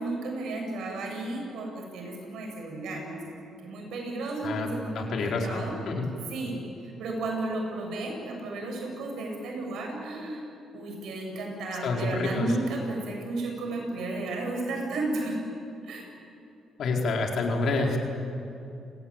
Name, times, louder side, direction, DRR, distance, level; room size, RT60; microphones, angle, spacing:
voice 1, 0.0-3.2 3.6-5.7 6.3-10.4 10.7-15.4 15.8-16.1, right 2 dB, 75° right, 1 dB, 7.9 m, -33 dB
voice 2, 4.9-6.1 11.8-12.5 16.8-18.0, left 3 dB, 65° left, 1 dB, 4.5 m, -28 dB
29.5 x 18.5 x 9.1 m, 2.7 s
cardioid pair, 90°, 0 cm